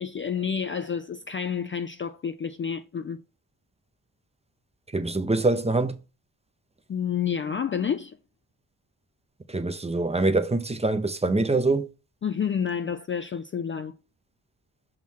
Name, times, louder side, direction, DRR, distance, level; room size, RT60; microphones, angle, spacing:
voice 1, 0.0-3.2 6.9-8.2 12.2-13.9, left 7 dB, 30° left, 0.4 m, -29 dB
voice 2, 4.9-6.0 9.5-11.9, right 2 dB, 15° right, 0.6 m, -24 dB
6.0 x 3.7 x 4.4 m
cardioid pair, 70°, 42 cm